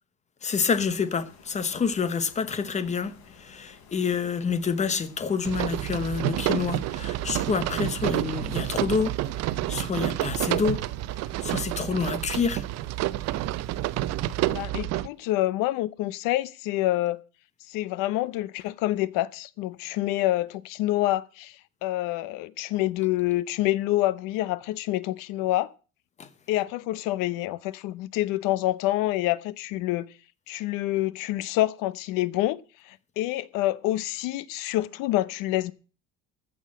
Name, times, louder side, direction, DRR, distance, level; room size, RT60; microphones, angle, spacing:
voice 1, 0.4-3.1 3.4-10.9 11.2-12.6 26.2-26.3, left 5 dB, 20° left, 1.0 m, -28 dB
Stream, 0.7-7.9, left 6 dB, 60° left, 3.9 m, -53 dB
sound 1, 5.4-15.1, right 15 dB, 55° right, 0.6 m, -29 dB
voice 2, 14.5-17.2 17.7-21.6 21.8-25.7 26.5-30.1 30.5-32.6 32.9-35.7, left 16 dB, 80° left, 0.9 m, -27 dB
15.0 x 6.4 x 7.5 m
cardioid pair, 165°, 32 cm